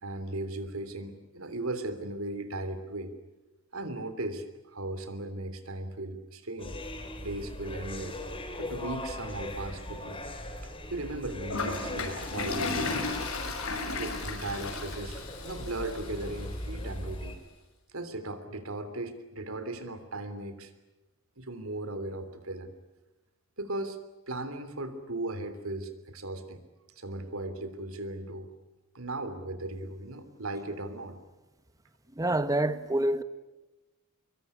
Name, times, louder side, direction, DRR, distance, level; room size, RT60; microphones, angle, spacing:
voice 1, 0.0-3.1 3.7-6.8 7.2-8.2 8.6-10.2 10.6-13.0 14.0-17.4 17.9-20.7 21.4-22.7 23.6-24.0 24.3-26.6 27.0-28.5 28.9-31.2, right 2 dB, 75° right, 3.3 m, -37 dB
sound 1, 6.6-17.4, left 1 dB, 25° left, 3.4 m, -39 dB
Toilet flush, 11.5-16.5, left 3 dB, 90° left, 6.4 m, -35 dB
voice 2, 32.2-33.2, right 1 dB, 15° right, 1.2 m, -27 dB
25.0 x 23.0 x 9.9 m
head